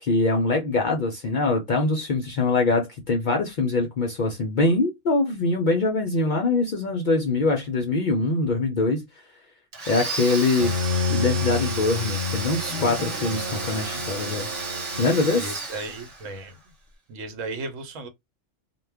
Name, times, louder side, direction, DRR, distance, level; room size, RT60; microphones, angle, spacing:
voice 1, 0.0-9.0 9.9-10.7 11.1-14.5 15.0-15.6, left 3 dB, 65° left, 0.4 m, -23 dB
Domestic sounds home sounds, 9.7-16.5, right 3 dB, 35° right, 0.9 m, -33 dB
Bowed string instrument, 10.6-15.4, left 4 dB, 65° right, 1.1 m, -29 dB
voice 2, 13.5-14.4 15.3-16.5 17.1-18.1, right 2 dB, 85° right, 1.0 m, -36 dB
2.2 x 2.2 x 3.3 m
omnidirectional pair, 1.3 m